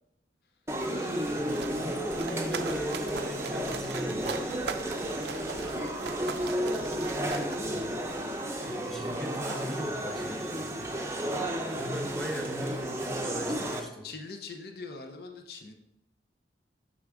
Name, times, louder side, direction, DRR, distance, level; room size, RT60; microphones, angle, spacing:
sound 1, 0.7-13.8, right 1 dB, 15° right, 0.6 m, -33 dB
voice 1, 0.8-4.4 7.6-8.1 8.6-10.9 11.7-14.1, equal, ahead, 1 dB, 1.0 m, -38 dB
sound 2, 1.4-8.2, right 6 dB, 70° right, 0.4 m, -41 dB
voice 2, 5.3-6.9 7.4-7.7 8.7-9.1 14.0-15.7, left 3 dB, 60° left, 5 dB, 0.7 m, -45 dB
6.2 x 6.2 x 3.6 m, 0.89 s
head